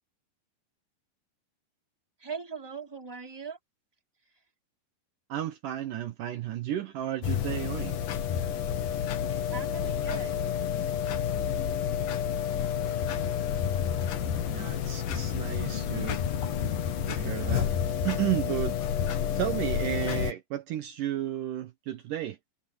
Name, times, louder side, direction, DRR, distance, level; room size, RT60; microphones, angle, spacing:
voice 1, 2.2-3.6 9.5-10.3, right 5 dB, 5° right, 2.5 m, -39 dB
voice 2, 5.3-8.0 14.5-16.2 17.1-17.7 18.0-18.8 19.4-22.4, right 12 dB, 90° right, 1.8 m, -33 dB
sound 1, 7.2-20.3, left 9 dB, 60° left, 2.5 m, -30 dB
omnidirectional pair, 5.3 m